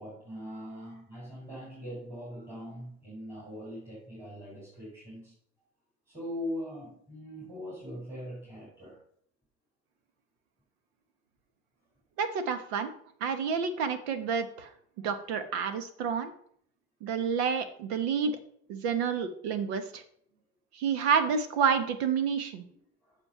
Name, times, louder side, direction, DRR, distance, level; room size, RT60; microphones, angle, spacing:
voice 1, 0.0-5.3 6.1-9.0 15.0-15.1 22.7-23.2, equal, 10° right, -8 dB, 4.6 m, -41 dB
voice 2, 12.2-12.9 13.2-14.7 15.0-16.3 17.0-18.4 18.7-20.0 20.7-22.6, right 6 dB, 80° right, 9 dB, 1.4 m, -29 dB
8.4 x 6.8 x 5.9 m, 0.64 s
cardioid pair, 160°, 32 cm